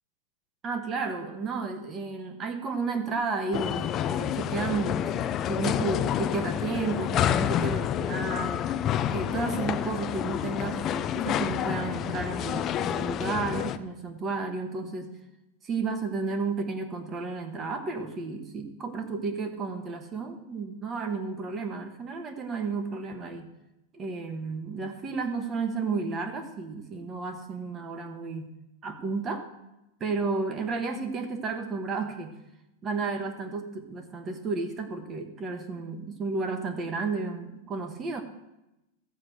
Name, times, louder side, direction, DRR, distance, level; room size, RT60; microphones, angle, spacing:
voice 1, 0.6-8.7 9.1-15.1 15.6-23.5 23.9-28.5 28.8-29.5 30.0-32.4 32.8-38.2, right 4 dB, 20° right, 7 dB, 1.2 m, -32 dB
sound 1, 3.5-13.8, left 10 dB, 25° left, 0.4 m, -29 dB
14.0 x 4.9 x 7.7 m, 0.93 s
supercardioid pair, 160°, 0 cm